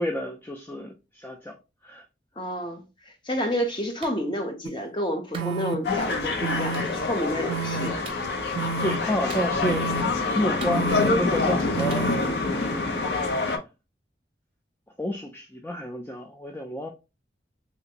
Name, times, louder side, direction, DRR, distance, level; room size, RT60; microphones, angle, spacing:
voice 1, 0.0-1.5 1.8-2.0 8.8-10.1 10.3-12.1 12.5-13.5 15.0-16.9, left 1 dB, 10° left, 0.3 m, -30 dB
voice 2, 2.4-8.0, equal, 25° left, 0.7 m, -30 dB
Clapping, 4.0-4.2 5.3-5.6 6.7-6.9 8.0-8.3 9.3-9.8 10.6-11.2 11.9-12.1, right 4 dB, 30° right, 0.6 m, -42 dB
sound 1, 4.7-4.8 5.3-5.8 6.4-6.8 7.5-7.9 8.6-9.0 9.6-10.0 10.7-11.1 11.8-12.2, right 6 dB, 85° right, 0.4 m, -30 dB
sound 2, 5.8-13.6, left 3 dB, 75° left, 0.6 m, -26 dB
3.3 x 2.9 x 2.8 m
head